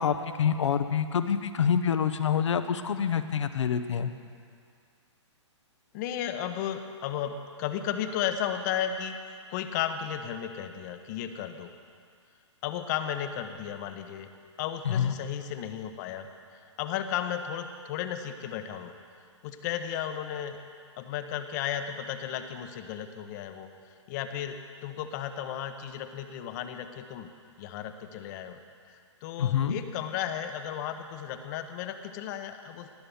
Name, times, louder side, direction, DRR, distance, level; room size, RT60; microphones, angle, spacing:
voice 1, 0.0-4.1 14.8-15.1 29.4-29.8, left 8 dB, 70° left, 10 dB, 1.0 m, -26 dB
voice 2, 5.9-9.2 9.5-11.7 12.6-14.3 14.6-16.3 16.8-18.9 19.4-20.6 21.0-23.7 24.1-27.3 27.6-28.6 29.2-32.9, left 9 dB, 35° left, 8 dB, 1.0 m, -34 dB
19.0 x 7.7 x 7.0 m, 2.1 s
hypercardioid pair, 135°, 16 cm